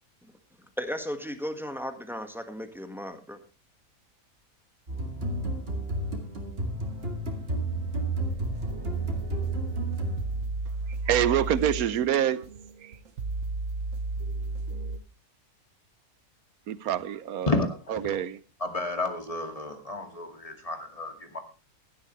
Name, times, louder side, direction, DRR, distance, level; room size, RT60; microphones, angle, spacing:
voice 1, 0.8-3.4, equal, ahead, 1.5 m, -35 dB
sound 1, 4.9-10.6, right 2 dB, 40° right, 2.6 m, -31 dB
sound 2, 8.3-15.0, right 3 dB, 65° right, 1.4 m, -34 dB
voice 2, 11.1-12.4 12.8-12.9 16.7-17.5 17.9-18.4, right 10 dB, 80° right, 1.3 m, -26 dB
voice 3, 17.5-18.0 18.6-21.4, left 2 dB, 25° left, 2.4 m, -31 dB
16.5 x 12.0 x 3.2 m
omnidirectional pair, 1.5 m